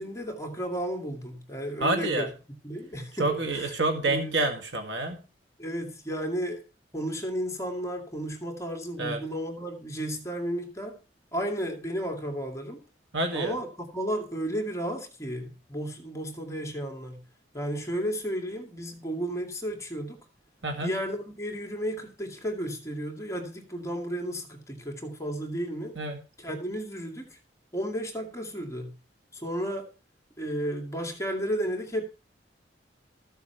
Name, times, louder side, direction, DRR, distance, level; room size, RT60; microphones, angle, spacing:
voice 1, 0.0-2.3 2.6-3.7 4.1-4.3 5.6-6.6 6.9-11.0 11.3-12.8 13.3-17.2 17.5-20.3 20.8-26.0 26.4-27.4 27.7-29.0 29.3-29.9 30.4-32.0, equal, 15° left, 2.3 m, -33 dB
voice 2, 1.8-2.3 3.2-5.2 9.0-9.2 13.1-13.5 20.6-20.9 26.0-26.2, right 2 dB, 85° right, 2.1 m, -28 dB
14.5 x 7.1 x 5.8 m
head